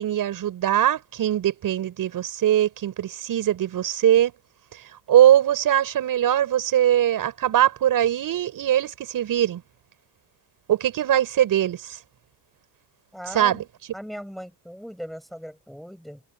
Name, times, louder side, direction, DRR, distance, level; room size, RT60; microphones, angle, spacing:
voice 1, 0.0-4.3 5.1-9.6 10.7-12.0 13.3-13.6, right 11 dB, 40° right, 6.3 m, -21 dB
voice 2, 13.1-13.6 13.9-16.2, equal, ahead, 5.9 m, -38 dB
cardioid pair, 125°, 49 cm